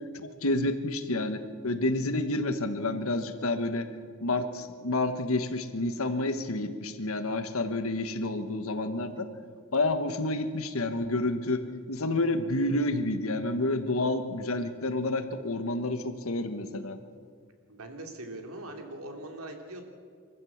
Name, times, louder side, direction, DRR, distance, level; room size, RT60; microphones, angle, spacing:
voice 1, 0.1-3.9 4.2-9.3 9.7-17.0, left 2 dB, 80° left, 9 dB, 1.4 m, -29 dB
voice 2, 17.7-19.8, right 1 dB, 85° right, 3 dB, 3.0 m, -41 dB
24.5 x 14.5 x 7.3 m, 2.1 s
head